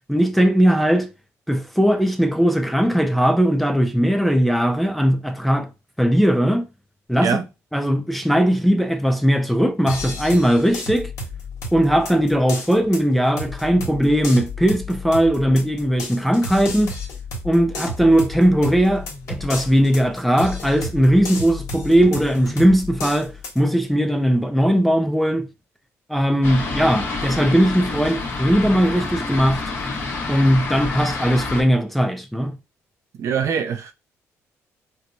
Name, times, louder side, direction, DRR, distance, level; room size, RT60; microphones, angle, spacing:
voice 1, 0.1-1.1 1.5-5.7 6.0-6.6 7.1-7.5 7.7-11.1 11.7-16.9 17.4-25.5 26.1-29.6 30.3-32.6, equal, ahead, 0.4 m, -19 dB
sound 1, 9.9-23.6, left 2 dB, 65° left, 1.2 m, -32 dB
Fixed-wing aircraft airplane, 26.4-31.6, left 3 dB, 40° left, 1.0 m, -28 dB
voice 2, 33.2-33.9, right 7 dB, 60° right, 0.5 m, -23 dB
4.4 x 2.1 x 2.6 m
cardioid pair, 110°, 6 cm